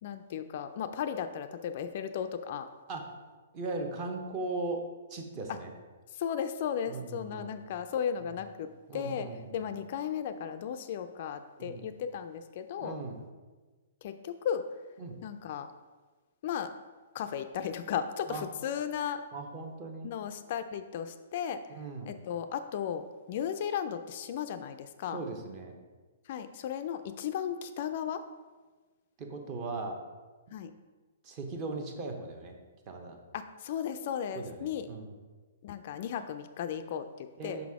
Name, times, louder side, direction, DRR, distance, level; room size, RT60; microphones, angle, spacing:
voice 1, 0.0-2.7 6.1-9.3 9.5-13.0 14.0-14.7 15.2-15.7 16.4-16.7 17.1-19.2 20.0-21.6 22.1-25.2 26.3-28.2 30.5-30.7 33.3-34.9 35.6-37.7, left 8 dB, 45° left, 9 dB, 0.3 m, -35 dB
voice 2, 3.5-4.8 5.1-5.7 6.9-7.5 8.9-9.6 11.6-11.9 12.8-13.2 15.0-15.2 18.3-18.5 19.3-20.1 21.7-22.1 25.1-25.8 29.2-30.0 31.2-32.6 32.9-33.2 34.3-35.2 37.4-37.7, right 3 dB, 30° right, 4 dB, 0.8 m, -38 dB
5.7 x 4.0 x 4.7 m, 1.3 s
hypercardioid pair, 160°, 0 cm